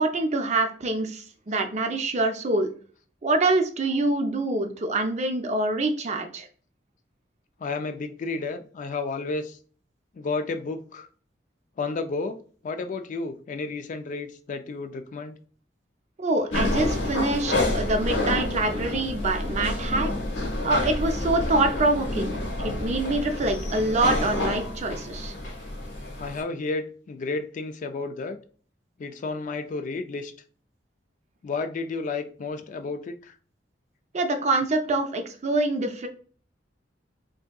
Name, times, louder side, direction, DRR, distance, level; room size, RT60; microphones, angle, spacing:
voice 1, 0.0-2.7 3.2-6.5 16.2-20.1 20.6-25.3 34.1-36.1, right 2 dB, 40° right, 6 dB, 0.4 m, -25 dB
voice 2, 7.6-9.6 10.1-11.1 11.8-12.4 12.6-15.3 26.2-28.4 29.0-30.3 31.4-33.3, left 3 dB, 45° left, 9 dB, 0.3 m, -32 dB
sound 1, 16.5-26.4, left 1 dB, 85° left, 0.9 m, -28 dB
3.4 x 2.7 x 2.2 m, 0.43 s
head